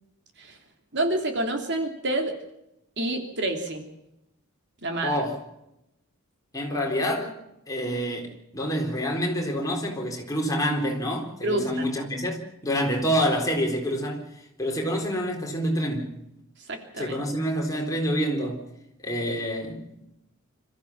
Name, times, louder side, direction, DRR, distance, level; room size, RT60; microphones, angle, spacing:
voice 1, 0.9-2.3 3.0-3.8 4.8-5.2 11.4-11.8 16.7-17.2, right 1 dB, 50° right, 3.1 m, -28 dB
voice 2, 5.0-5.4 6.5-7.3 7.7-14.2 14.6-16.1 17.0-18.6 19.0-19.9, equal, 15° left, 4.1 m, -27 dB
26.5 x 14.5 x 7.3 m
head